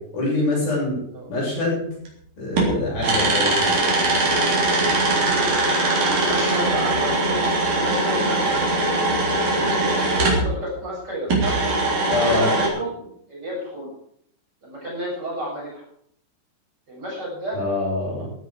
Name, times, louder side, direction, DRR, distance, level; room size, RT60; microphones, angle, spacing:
voice 1, 0.1-1.0 1.3-1.9 2.4-3.7 12.1-12.5 17.5-18.3, left 2 dB, 60° left, -4 dB, 9.5 m, -24 dB
sound 1, 2.0-2.1 2.5-10.5 11.3-12.7, right 2 dB, 50° right, 5.0 m, -21 dB
voice 2, 6.2-7.4 7.8-8.6 9.4-11.6 11.9-13.9 14.6-15.8 16.9-17.6, equal, 25° right, -5 dB, 7.8 m, -31 dB
15.5 x 14.5 x 4.8 m, 0.67 s
omnidirectional pair, 4.7 m